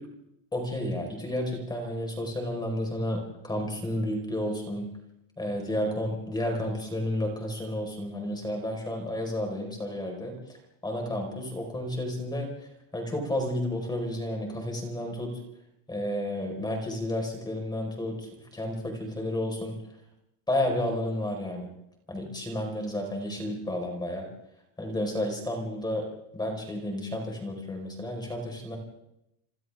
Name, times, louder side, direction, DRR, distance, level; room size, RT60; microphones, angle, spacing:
voice 1, 0.5-4.9 5.4-10.3 10.8-12.5 12.9-15.3 15.9-19.8 20.5-21.7 22.1-24.3 24.8-26.1 26.3-28.8, left 1 dB, 10° left, 2 dB, 4.7 m, -31 dB
28.0 x 26.5 x 3.6 m, 0.81 s
cardioid pair, 170°, 45 cm